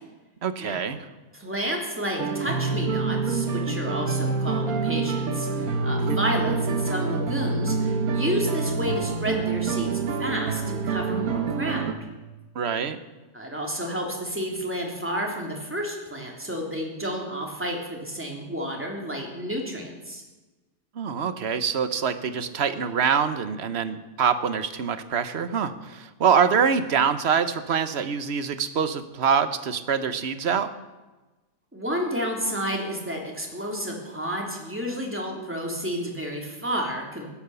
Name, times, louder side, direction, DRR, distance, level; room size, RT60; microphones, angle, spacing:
voice 1, 0.4-1.1 6.0-6.2 12.5-13.0 20.9-30.7, right 7 dB, 45° right, 11 dB, 1.1 m, -25 dB
voice 2, 1.3-9.9 10.2-11.9 13.3-20.2 31.7-37.3, equal, 5° right, 0 dB, 3.0 m, -31 dB
sound 1, 2.2-11.9, right 4 dB, 60° right, 1.5 m, -26 dB
16.5 x 12.0 x 7.0 m, 1.2 s
omnidirectional pair, 1.8 m